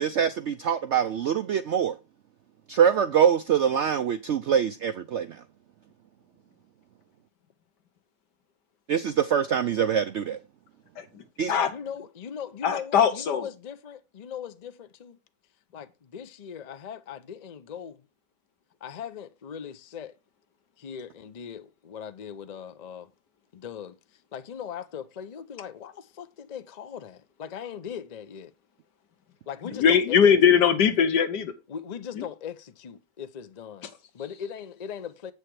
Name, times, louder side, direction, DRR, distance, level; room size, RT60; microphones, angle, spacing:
voice 1, 0.0-1.9 2.7-5.4 8.9-10.4 11.4-11.5, right 8 dB, 75° right, 0.6 m, -24 dB
voice 2, 11.0-11.7 12.6-13.5 29.6-31.5 32.2-32.3, left 7 dB, 80° left, 1.7 m, -21 dB
voice 3, 11.7-15.2 15.7-18.0 18.8-20.2 20.8-23.1 23.5-28.5 29.5-30.2 30.5-30.6 31.7-35.3, left 8 dB, 50° left, 0.5 m, -39 dB
7.9 x 6.6 x 4.7 m
omnidirectional pair, 1.8 m